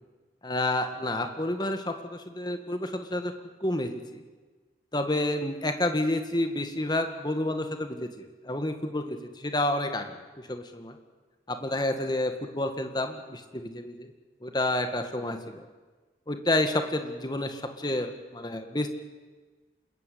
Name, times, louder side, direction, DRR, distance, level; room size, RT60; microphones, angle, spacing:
voice 1, 0.4-3.3 3.6-4.2 4.9-11.0 11.5-14.1 14.4-15.7 16.3-18.9, left 1 dB, 25° left, 6 dB, 1.9 m, -30 dB
27.0 x 21.5 x 8.6 m, 1.3 s
head